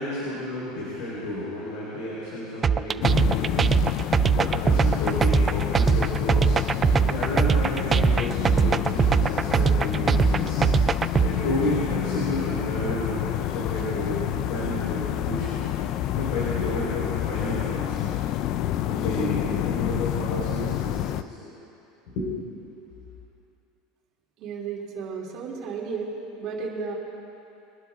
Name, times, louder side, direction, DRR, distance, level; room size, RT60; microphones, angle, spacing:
voice 1, 0.0-10.6 11.2-15.6 16.1-18.1 18.8-21.5 22.1-22.3, left 1 dB, 65° left, -8 dB, 4.2 m, -32 dB
sound 1, 2.6-11.3, right 6 dB, 20° right, 0.3 m, -21 dB
sound 2, 3.0-21.2, left 12 dB, 50° left, 0.5 m, -28 dB
voice 2, 24.4-26.9, right 5 dB, 45° right, -3 dB, 3.1 m, -33 dB
23.0 x 11.5 x 3.7 m, 2.8 s
supercardioid pair, 150°, 0 cm